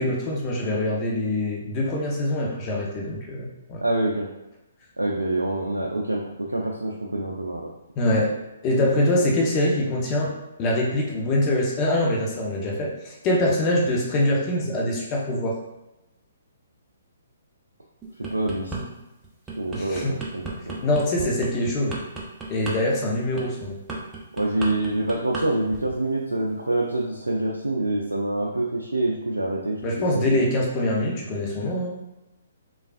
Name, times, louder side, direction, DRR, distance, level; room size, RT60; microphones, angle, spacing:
voice 1, 0.0-3.8 8.0-8.3 8.6-10.3 10.6-15.6 19.7-20.2 20.8-22.0 22.5-23.8 29.8-31.9, left 1 dB, 30° left, -2 dB, 0.7 m, -24 dB
voice 2, 3.8-4.3 5.0-7.7 18.3-18.9 19.6-20.8 24.3-30.4, right 2 dB, 90° right, -2 dB, 0.4 m, -26 dB
sound 1, 18.0-18.8 19.2-25.4 25.7-26.0, right 3 dB, 15° right, 0.6 m, -34 dB
3.3 x 2.3 x 2.4 m, 0.98 s
figure-of-eight pair, 130°, 0 cm